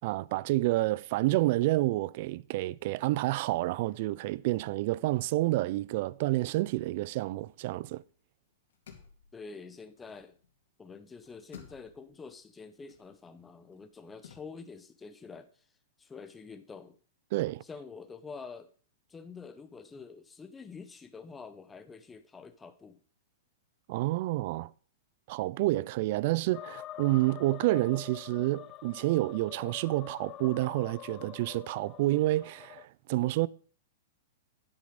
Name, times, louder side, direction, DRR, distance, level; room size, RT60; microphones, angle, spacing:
voice 1, 0.0-8.0 17.3-17.6 23.9-24.7 25.3-33.5, right 18 dB, 55° right, 0.4 m, -29 dB
sound 1, 6.6-8.2 8.5-10.7 11.0-14.4, left 8 dB, 70° left, 2.3 m, -56 dB
voice 2, 9.3-10.4 10.8-15.5 16.0-17.0 17.6-18.7 19.1-23.0, left 5 dB, 15° left, 0.8 m, -47 dB
sound 2, 26.5-32.8, left 13 dB, 35° left, 0.4 m, -46 dB
9.8 x 7.8 x 5.1 m
hypercardioid pair, 125°, 0 cm